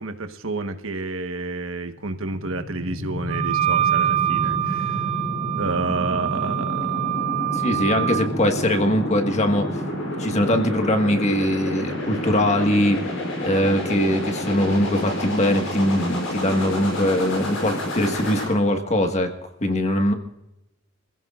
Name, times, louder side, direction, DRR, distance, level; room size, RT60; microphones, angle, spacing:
voice 1, 0.0-5.0 5.6-7.4 7.7-7.8, right 3 dB, 80° right, 7 dB, 1.3 m, -30 dB
sound 1, 1.9-18.4, left 1 dB, 80° left, 7.3 m, -29 dB
Wind instrument woodwind instrument, 3.3-8.3, right 13 dB, 30° right, 0.5 m, -25 dB
voice 2, 7.5-9.8 10.2-13.0 13.4-19.3 19.6-20.1, left 1 dB, 35° left, 5 dB, 1.6 m, -21 dB
26.0 x 15.5 x 2.5 m, 0.91 s
head